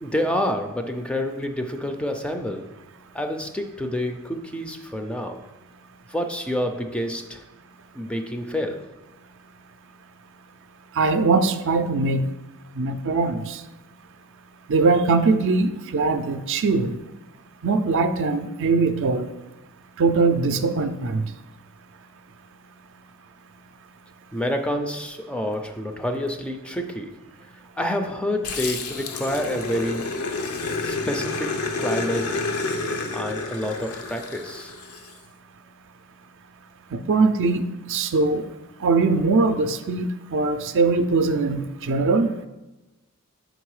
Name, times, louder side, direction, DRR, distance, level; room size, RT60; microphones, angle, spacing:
voice 1, 0.0-2.7 3.1-5.4 6.1-7.4 7.9-8.9 24.3-27.2 27.8-30.0 30.8-32.5 33.1-34.7, left 1 dB, 5° left, 5 dB, 0.4 m, -28 dB
voice 2, 11.0-12.3 12.8-13.6 14.7-17.0 17.6-19.3 20.0-21.3 36.9-37.6 37.9-38.4 38.8-42.3, right 3 dB, 60° right, 9 dB, 0.4 m, -21 dB
Growling, 28.4-35.1, left 3 dB, 85° left, 0.7 m, -29 dB
6.0 x 3.9 x 4.7 m, 1.0 s
head